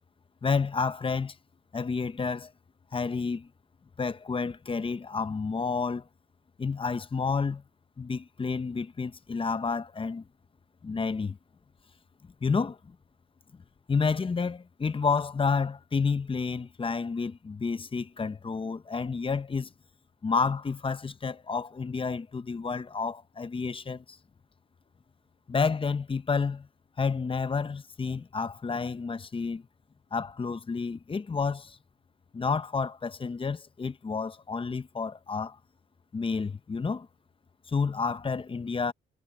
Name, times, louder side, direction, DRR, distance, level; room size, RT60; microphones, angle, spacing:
voice 1, 0.4-1.3 1.7-2.5 2.9-3.5 4.0-6.0 6.6-7.6 8.0-10.2 10.8-11.4 12.4-12.8 13.9-19.7 20.2-24.0 25.5-26.7 27.0-29.6 30.1-31.8 32.3-35.6 36.1-37.1 37.7-38.9, left 5 dB, 25° left, 0.9 m, -30 dB
cardioid pair, 90°, 20 cm